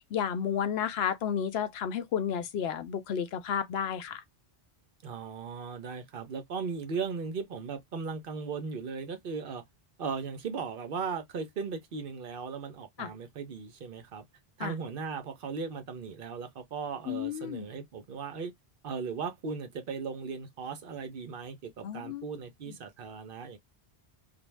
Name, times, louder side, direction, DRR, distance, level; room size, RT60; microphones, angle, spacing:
voice 1, 0.1-4.2 13.0-13.1 14.6-14.7 17.1-17.7 21.8-22.3 22.7-22.8, left 8 dB, 80° left, 0.8 m, -32 dB
voice 2, 5.0-9.6 10.0-14.2 14.6-18.5 18.8-23.6, right 5 dB, 60° right, 0.8 m, -37 dB
2.5 x 2.0 x 3.1 m
omnidirectional pair, 1.1 m